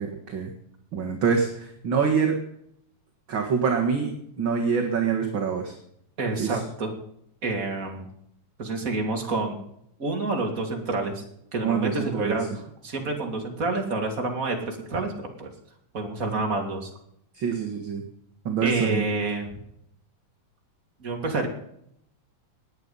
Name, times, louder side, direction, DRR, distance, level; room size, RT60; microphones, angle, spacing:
voice 1, 0.9-2.4 3.3-4.1 4.4-5.7 6.4-6.6 11.6-12.4 17.4-18.0 18.5-19.0, right 6 dB, 45° right, 1 dB, 2.2 m, -25 dB
voice 2, 6.2-6.9 7.4-8.1 8.6-9.6 10.0-11.2 11.5-15.1 15.4-15.5 15.9-16.9 18.6-19.5 21.0-21.5, right 3 dB, 25° right, 2 dB, 3.0 m, -28 dB
20.0 x 9.2 x 5.6 m, 0.71 s
omnidirectional pair, 3.7 m